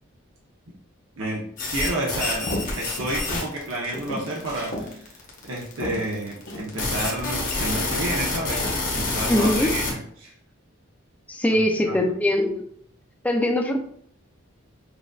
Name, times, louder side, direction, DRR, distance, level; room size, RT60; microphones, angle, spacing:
sound 1, 1.6-9.9, left 3 dB, 40° left, 0.9 m, -28 dB
voice 1, 1.7-8.6 8.9-10.3 11.5-11.6 11.8-12.0, right 1 dB, 75° right, -3 dB, 0.8 m, -30 dB
sound 2, 2.5-3.2 3.5-4.9 5.4-5.5 5.8-6.7 7.4-8.1 8.5-8.9, left 1 dB, 60° left, 1.1 m, -34 dB
voice 2, 9.3-9.7 11.3-12.6 13.2-13.8, left 1 dB, 5° left, 2 dB, 0.4 m, -22 dB
6.0 x 2.5 x 2.3 m, 0.65 s
head